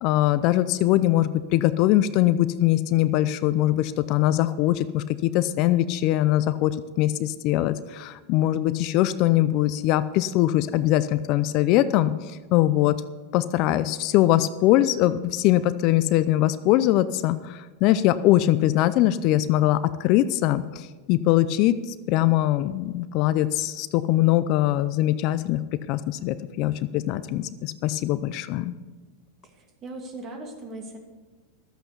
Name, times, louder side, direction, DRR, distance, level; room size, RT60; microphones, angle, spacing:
voice 1, 0.0-13.0 13.3-21.8 22.1-25.6 25.9-28.7, left 14 dB, 50° left, 13 dB, 0.5 m, -22 dB
voice 2, 29.5-31.0, right 2 dB, 30° right, 2 dB, 2.5 m, -39 dB
12.5 x 8.0 x 6.9 m, 1.3 s
supercardioid pair, 130°, 0 cm